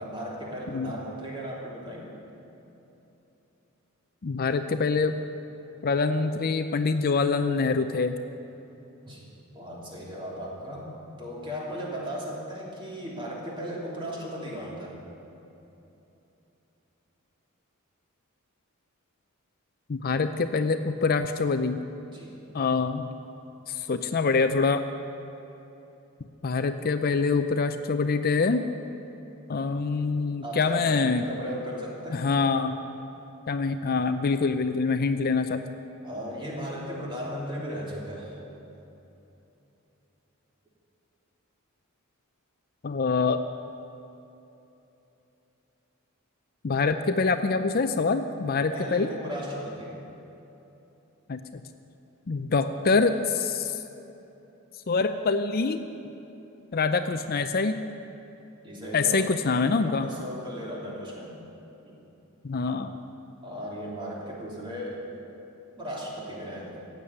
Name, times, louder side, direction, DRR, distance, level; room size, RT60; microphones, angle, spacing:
voice 1, 0.0-2.1 9.1-9.3 9.5-10.9 11.2-14.9 22.1-22.3 30.4-32.2 36.0-38.4 48.7-50.0 58.6-59.3 59.8-61.4 61.8-62.0 63.4-65.0 65.8-66.8, equal, 25° right, -4 dB, 3.1 m, -36 dB
voice 2, 4.2-5.1 5.8-8.2 19.9-21.8 22.5-23.1 23.7-24.8 26.4-28.6 29.5-31.2 32.1-32.7 33.5-35.6 42.8-43.4 46.6-49.1 51.3-51.6 52.3-53.8 54.9-55.8 56.7-57.8 58.9-60.1 62.4-63.0, left 4 dB, 45° left, 9 dB, 0.5 m, -25 dB
15.0 x 8.2 x 9.7 m, 3.0 s
head